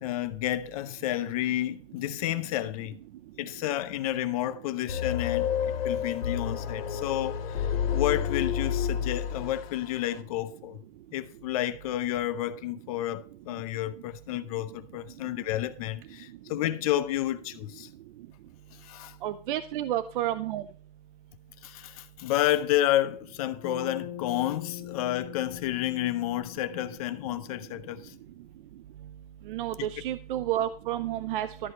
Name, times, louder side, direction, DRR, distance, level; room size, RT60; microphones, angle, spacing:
voice 1, 0.0-3.0 3.4-5.6 5.8-7.7 7.9-10.8 11.1-17.9 18.7-19.2 21.6-28.1, left 13 dB, 40° left, 0.6 m, -30 dB
sound 1, 4.9-9.9, left 8 dB, 80° left, 1.7 m, -30 dB
voice 2, 19.2-20.6 29.5-31.7, right 12 dB, 60° right, 0.6 m, -30 dB
Bass guitar, 23.6-28.1, left 13 dB, 25° left, 1.4 m, -43 dB
13.0 x 6.3 x 4.3 m
supercardioid pair, 160°, 29 cm